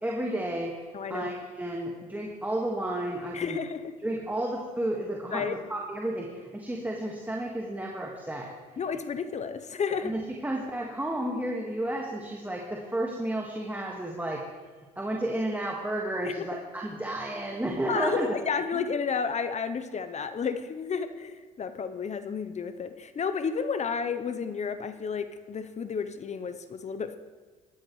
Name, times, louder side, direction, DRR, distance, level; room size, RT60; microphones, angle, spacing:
voice 1, 0.0-0.8 1.1-3.6 4.0-8.5 10.0-14.4 15.0-18.3 18.7-18.8, right 1 dB, 10° right, -1 dB, 1.8 m, -32 dB
voice 2, 0.9-1.3 3.3-3.9 5.3-5.5 8.8-10.1 16.2-16.6 17.9-27.2, left 6 dB, 40° left, 10 dB, 0.8 m, -32 dB
14.5 x 12.0 x 3.3 m, 1.5 s
hypercardioid pair, 55°, 18 cm